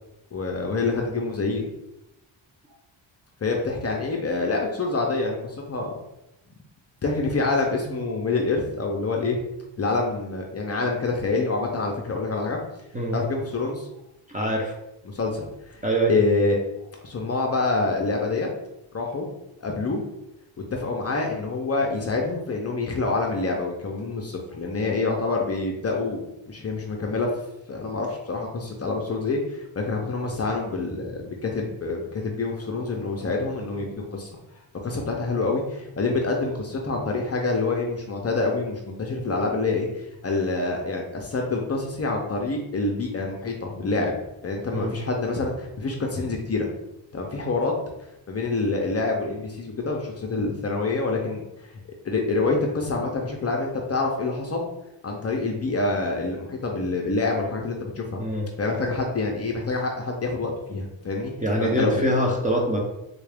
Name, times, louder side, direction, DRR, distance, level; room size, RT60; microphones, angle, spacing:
voice 1, 0.3-1.6 3.4-6.0 7.0-9.4 9.8-12.6 13.1-13.9 15.1-15.8 16.1-16.6 17.0-18.5 18.9-19.3 19.6-20.0 20.7-27.3 27.7-34.3 34.8-44.1 44.4-46.7 47.1-47.7 48.3-51.4 52.0-54.7 55.0-58.2 58.6-61.3 61.6-62.0, left 3 dB, 35° left, 0 dB, 0.5 m, -26 dB
voice 2, 14.3-14.7 15.8-16.1 44.7-44.9 58.2-58.4 61.4-62.8, right 1 dB, 15° right, -1 dB, 0.5 m, -24 dB
3.6 x 2.4 x 3.3 m, 0.87 s
wide cardioid pair, 135°, 47 cm